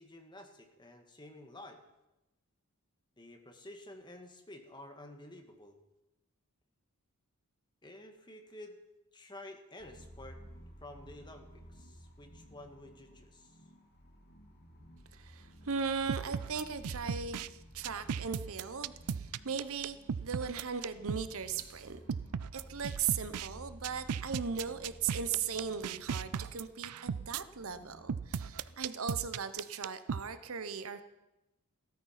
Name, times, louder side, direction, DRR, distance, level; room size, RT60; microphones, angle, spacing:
voice 1, 0.0-1.8 3.2-5.8 7.8-8.8 9.1-10.4 10.8-13.6, left 1 dB, 20° left, 4 dB, 1.7 m, -51 dB
sound 1, 9.8-28.8, equal, 50° left, 2.2 m, -55 dB
voice 2, 15.1-22.0 22.5-31.0, right 6 dB, 65° right, 11 dB, 0.9 m, -38 dB
sound 2, 16.1-17.5 17.8-21.3 21.6-21.7 22.1-23.5 23.8-27.4 28.1-30.2, right 6 dB, 90° right, 0.5 m, -36 dB
15.5 x 13.0 x 5.8 m, 0.97 s
head